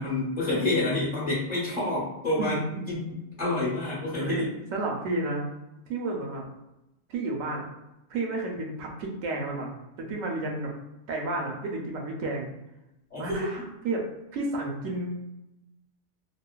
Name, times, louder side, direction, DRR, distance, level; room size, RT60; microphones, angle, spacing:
voice 1, 0.0-2.6 2.9-3.1 3.4-4.5 13.1-13.7, left 2 dB, 40° left, -7 dB, 1.3 m, -28 dB
voice 2, 2.4-3.0 4.2-5.4 5.9-6.4 7.1-7.7 8.1-10.7 11.1-12.5 13.2-14.0 14.3-15.2, right 2 dB, 85° right, 0 dB, 1.0 m, -31 dB
3.0 x 2.0 x 2.2 m, 0.92 s
omnidirectional pair, 1.3 m